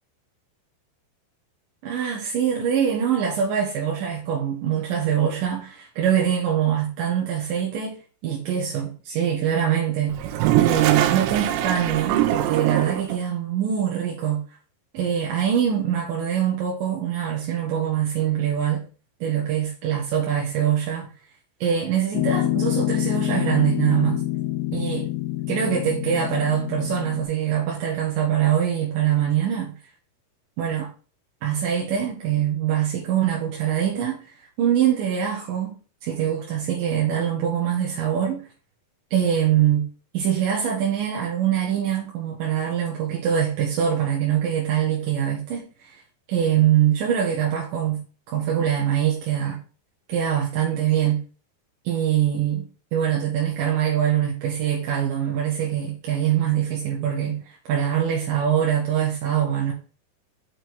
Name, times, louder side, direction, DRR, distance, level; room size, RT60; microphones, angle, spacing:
voice 1, 1.8-8.0 8.2-10.3 10.6-14.4 14.9-18.8 19.2-21.1 21.6-24.2 24.7-25.1 25.5-29.7 30.6-30.9 31.4-34.2 34.6-35.8 36.0-38.5 39.1-39.9 40.1-46.0 46.3-48.0 48.3-49.6 50.1-51.2 51.8-52.7 52.9-59.7, right 9 dB, 65° right, 2.4 m, -23 dB
Toilet flush, 10.1-13.2, right 13 dB, 85° right, 2.8 m, -22 dB
Piano, 22.1-27.2, left 15 dB, 85° left, 2.1 m, -26 dB
6.8 x 5.0 x 3.9 m
omnidirectional pair, 5.1 m